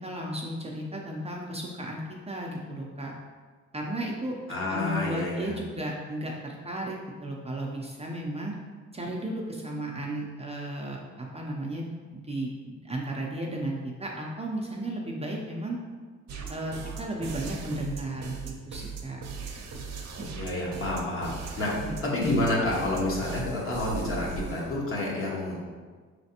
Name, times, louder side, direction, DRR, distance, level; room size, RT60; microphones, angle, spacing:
voice 1, 0.0-3.1 3.7-4.3 4.7-8.5 8.9-15.8 16.5-19.2 20.2-20.3 21.8-22.1, right 1 dB, 20° right, -2 dB, 0.5 m, -34 dB
voice 2, 4.5-5.5 20.4-25.6, left 2 dB, 45° left, -4 dB, 1.3 m, -29 dB
sound 1, 16.3-24.7, right 5 dB, 60° right, 0.7 m, -38 dB
5.0 x 3.3 x 2.8 m, 1.5 s
cardioid pair, 90°, 30 cm